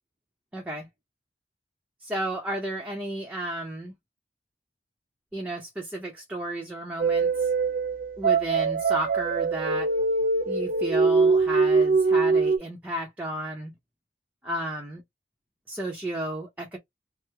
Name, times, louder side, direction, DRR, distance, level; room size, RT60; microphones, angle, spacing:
voice 1, 0.5-0.9 2.0-3.9 5.3-7.5 8.2-9.9 10.5-13.7 14.4-15.0 15.7-16.8, right 1 dB, 10° right, 0.6 m, -33 dB
sound 1, 7.0-12.6, right 4 dB, 50° right, 0.6 m, -23 dB
3.1 x 2.0 x 3.2 m
head